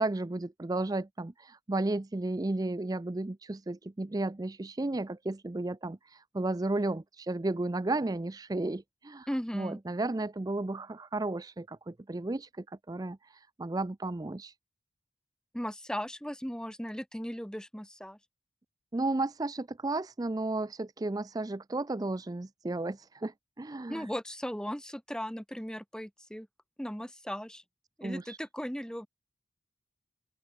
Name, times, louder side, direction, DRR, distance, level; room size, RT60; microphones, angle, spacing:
voice 1, 0.0-9.3 9.5-14.5 18.9-24.1 28.0-28.4, right 2 dB, 20° right, 0.4 m, -33 dB
voice 2, 9.3-9.8 15.5-18.2 23.9-26.5 26.8-27.6 28.0-29.1, equal, 5° left, 2.2 m, -37 dB
open air
head